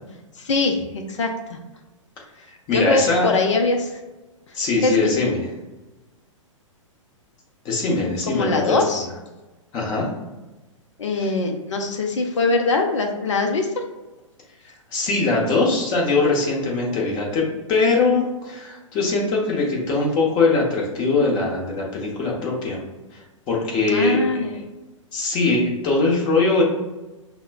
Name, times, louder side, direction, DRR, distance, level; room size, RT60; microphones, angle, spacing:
voice 1, 0.4-1.6 2.7-3.9 4.8-5.0 8.3-9.1 11.0-13.7 23.9-24.5, left 3 dB, 65° left, 4 dB, 0.6 m, -22 dB
voice 2, 2.7-3.3 4.5-5.5 7.6-8.8 9.7-10.1 11.1-11.3 14.9-22.8 23.5-24.3 24.5-24.6 25.1-26.6, left 3 dB, 25° left, -2 dB, 1.0 m, -21 dB
5.4 x 2.1 x 2.3 m, 1.1 s
figure-of-eight pair, 110°, 17 cm